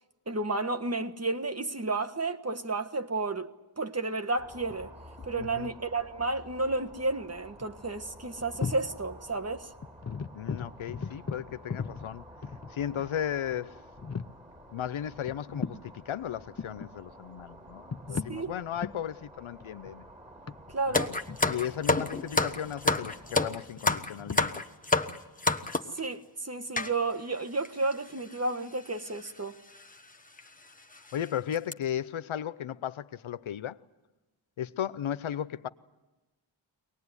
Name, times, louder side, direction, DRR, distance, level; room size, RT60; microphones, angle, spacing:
voice 1, 0.3-3.5 3.8-4.9 5.2-9.7 18.3-18.5 20.7-21.1 25.9-29.5, right 3 dB, 30° right, 1.4 m, -32 dB
sound 1, 4.4-23.6, equal, 15° right, 4.0 m, -51 dB
sound 2, 4.7-5.5 7.3-7.4 7.6-7.8 8.4-9.0 9.3-9.4 9.8-13.0 13.5-13.6 14.0-14.4 15.3-15.9 16.4-16.9 17.6-18.4 18.8-19.0 19.6-22.6 23.0-24.4, left 5 dB, 35° left, 0.7 m, -38 dB
voice 2, 5.4-5.7 10.3-12.3 12.7-13.8 14.7-20.1 20.9-21.0 21.4-24.6 31.1-33.8 34.6-35.7, left 10 dB, 75° left, 0.8 m, -35 dB
sound 3, 20.9-26.0 26.8-26.9 27.6-27.7 27.9-28.1 29.1-29.3 29.7-29.9 30.4-30.5 30.9-31.1 31.5-31.7, left 3 dB, 15° left, 1.3 m, -28 dB
23.0 x 19.5 x 9.7 m
cardioid pair, 50°, 48 cm